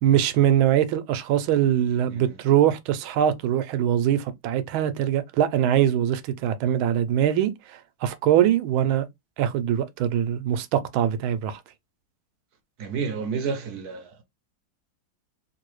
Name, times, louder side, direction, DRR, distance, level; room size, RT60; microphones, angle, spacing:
voice 1, 0.0-9.1 9.4-11.6, right 10 dB, 80° right, 1.4 m, -22 dB
voice 2, 12.8-14.2, right 5 dB, 65° right, 1.0 m, -30 dB
3.8 x 2.6 x 3.0 m
omnidirectional pair, 2.2 m